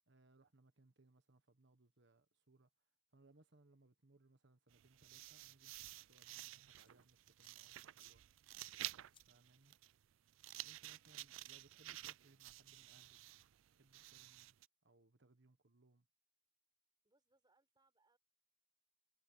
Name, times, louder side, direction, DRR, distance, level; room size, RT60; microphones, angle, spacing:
voice 1, 0.1-8.2 9.3-9.8 10.6-16.1, right 2 dB, 60° right, 1.4 m, -70 dB
sound 1, 4.7-14.7, right 16 dB, 75° right, 0.4 m, -52 dB
sound 2, 6.8-13.3, left 8 dB, 25° left, 0.9 m, -79 dB
voice 2, 17.0-18.2, right 2 dB, 20° right, 4.8 m, -79 dB
head